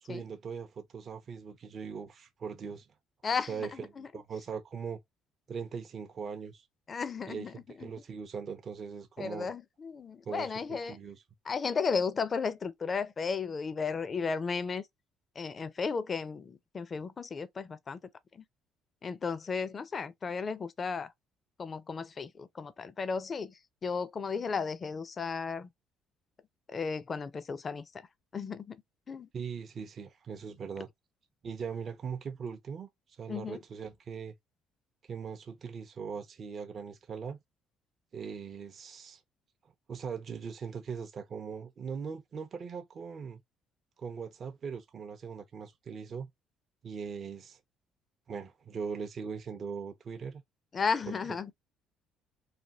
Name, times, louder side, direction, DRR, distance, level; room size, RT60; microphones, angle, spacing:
voice 1, 0.0-2.9 3.5-5.0 5.5-6.7 7.3-9.5 10.3-11.2 29.3-30.9 31.4-32.9 33.2-34.3 35.0-37.4 38.1-39.2 39.9-43.4 44.0-46.3 46.8-47.6 48.3-50.4 51.1-51.4, right 6 dB, 50° right, 0.5 m, -40 dB
voice 2, 3.2-4.1 6.9-7.5 7.8-7.9 9.2-11.0 11.5-14.8 15.4-18.0 18.3-18.4 19.0-21.1 21.6-25.7 26.7-28.1 28.3-28.8 29.1-29.3 33.3-33.6 50.7-51.5, left 5 dB, 40° left, 0.5 m, -34 dB
3.3 x 2.2 x 2.7 m
supercardioid pair, 65°, 0 cm